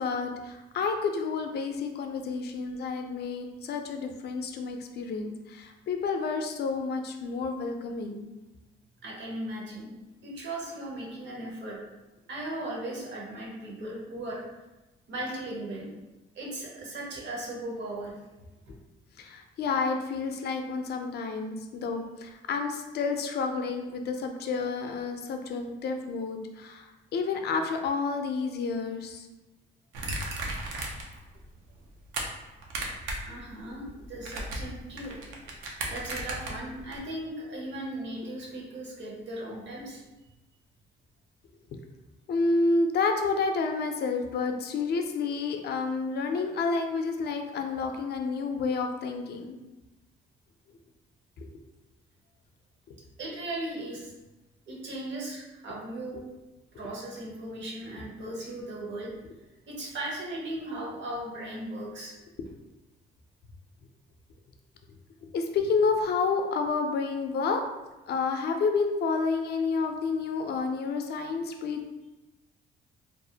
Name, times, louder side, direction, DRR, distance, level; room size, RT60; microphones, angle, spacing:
voice 1, 0.0-8.2 19.2-29.3 42.3-49.6 51.4-51.5 52.9-53.0 56.1-56.2 65.2-67.6 68.1-71.8, left 4 dB, 55° left, 5 dB, 0.4 m, -30 dB
voice 2, 9.0-9.9 10.2-11.8 12.3-14.4 15.1-15.9 16.3-18.1 33.1-35.2 35.9-40.0 53.2-54.1 54.7-56.2 56.7-59.1 59.7-62.1, right 1 dB, 65° right, -3 dB, 0.8 m, -37 dB
sound 1, 29.9-31.2 31.5-32.2 32.6-33.3 33.6-37.0, right 2 dB, 90° right, 0.5 m, -35 dB
2.4 x 2.0 x 2.7 m, 1.0 s
cardioid pair, 90°, 20 cm